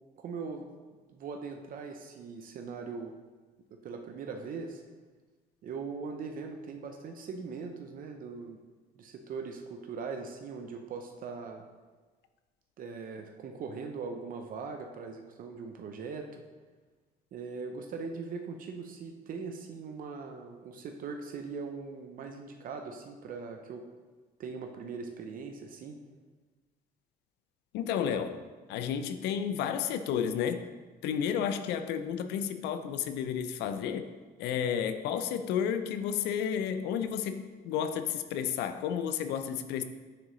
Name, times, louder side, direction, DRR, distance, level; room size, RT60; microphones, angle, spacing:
voice 1, 0.2-0.7 0.9-3.1 3.8-4.8 5.6-8.6 9.0-11.6 12.8-16.4 17.3-23.8 24.4-26.0, right 5 dB, 55° right, 4 dB, 0.6 m, -40 dB
voice 2, 27.7-28.4 28.7-30.7 31.0-34.1 34.4-39.8, left 8 dB, 85° left, 10 dB, 0.4 m, -32 dB
9.8 x 3.7 x 3.1 m, 1.4 s
cardioid pair, 110°, 17 cm